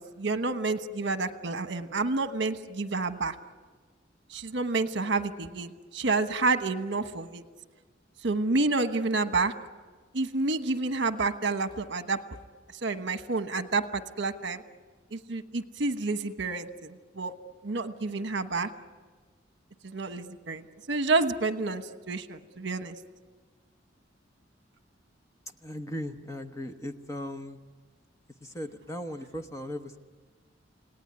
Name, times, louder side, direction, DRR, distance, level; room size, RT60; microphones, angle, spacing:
voice 1, 0.0-3.3 4.3-7.4 8.2-9.5 10.1-12.2 12.8-14.6 15.1-17.3 17.6-18.7 19.8-20.6 20.9-22.9, right 3 dB, 65° right, 9 dB, 1.2 m, -29 dB
voice 2, 25.6-27.6 28.4-30.0, left 1 dB, 15° left, 8 dB, 1.1 m, -37 dB
28.5 x 18.5 x 9.8 m, 1.4 s
head